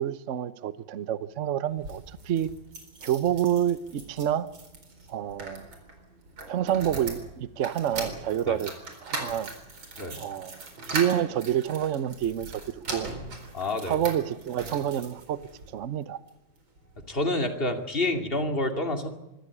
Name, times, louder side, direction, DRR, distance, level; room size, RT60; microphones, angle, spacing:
voice 1, 0.0-2.5 3.0-4.5 5.1-5.7 6.5-8.7 9.0-9.5 10.2-10.6 10.9-13.1 13.9-15.4 15.7-16.2, right 10 dB, 50° right, 1.0 m, -28 dB
sound 1, 1.7-15.7 16.3-17.1 17.5-17.6 17.8-17.9, right 2 dB, 85° right, 5.1 m, -40 dB
voice 2, 13.5-14.0 17.1-19.1, left 2 dB, 30° left, 2.6 m, -28 dB
25.0 x 14.0 x 9.8 m
omnidirectional pair, 2.1 m